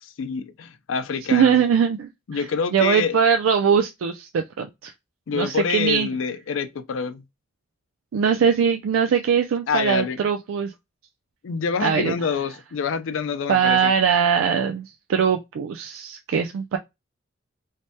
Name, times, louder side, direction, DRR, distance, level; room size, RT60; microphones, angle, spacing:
voice 1, 0.0-1.6 2.3-3.2 5.3-7.2 9.7-10.2 11.4-13.9, left 5 dB, 85° left, 0.4 m, -26 dB
voice 2, 1.3-2.4 2.7-4.9 5.3-6.1 8.1-10.7 11.8-12.2 13.5-16.8, right 7 dB, 85° right, 0.3 m, -21 dB
3.2 x 2.1 x 2.7 m
head